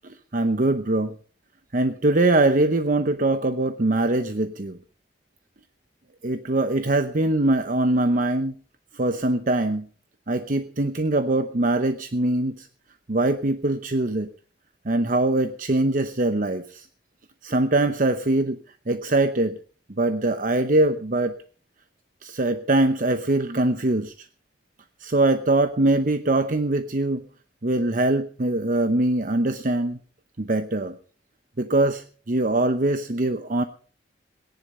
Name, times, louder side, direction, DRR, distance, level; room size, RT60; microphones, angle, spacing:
voice 1, 0.3-1.1 1.7-4.8 6.2-8.5 9.0-9.9 10.3-12.7 13.1-14.3 14.9-16.8 17.4-18.6 18.9-19.6 20.0-21.4 22.2-24.1 25.0-27.2 27.6-30.0 30.4-30.9 31.6-33.6, right 2 dB, 50° right, 9 dB, 0.9 m, -22 dB
18.0 x 10.5 x 5.5 m, 0.42 s
head